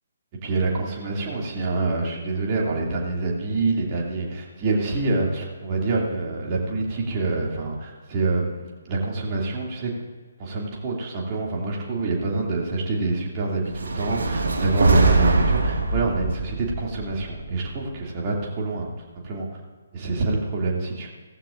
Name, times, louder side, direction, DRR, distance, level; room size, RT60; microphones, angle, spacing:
voice 1, 0.4-9.9 10.4-18.9 19.2-19.5 19.9-21.1, right 3 dB, 30° right, -2 dB, 2.5 m, -26 dB
sound 1, 13.7-18.0, right 3 dB, 65° right, 1.4 m, -22 dB
16.5 x 14.5 x 2.5 m, 1.4 s
figure-of-eight pair, 135°, 0 cm